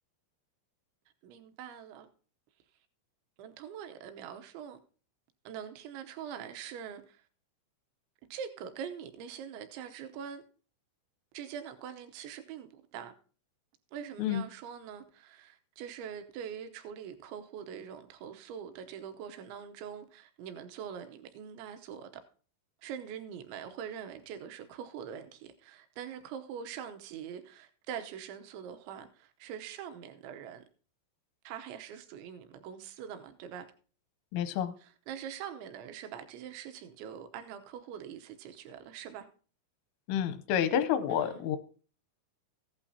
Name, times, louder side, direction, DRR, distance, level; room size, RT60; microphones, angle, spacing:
voice 1, 1.2-2.1 3.4-4.8 5.5-7.2 8.3-10.4 11.3-13.1 13.9-22.1 22.8-30.6 31.4-33.7 34.8-39.3 41.1-41.5, right 8 dB, 80° right, 3.0 m, -43 dB
voice 2, 34.3-34.7 40.1-41.6, left 9 dB, 85° left, 3.3 m, -29 dB
14.5 x 11.5 x 2.8 m
omnidirectional pair, 5.7 m